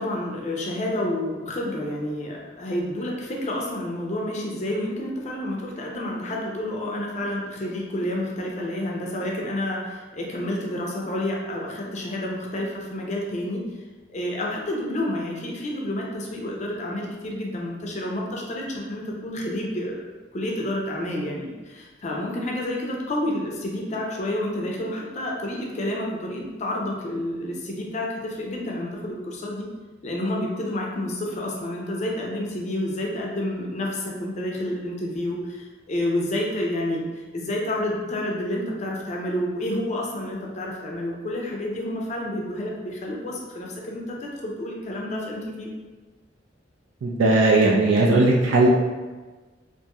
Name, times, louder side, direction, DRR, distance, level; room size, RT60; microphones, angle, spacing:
voice 1, 0.0-13.6 14.1-20.0 20.3-29.7 30.0-45.8, left 1 dB, 40° left, -2 dB, 0.5 m, -29 dB
voice 2, 47.0-48.7, right 2 dB, 85° right, -2 dB, 0.4 m, -18 dB
2.9 x 2.5 x 2.3 m, 1.3 s
head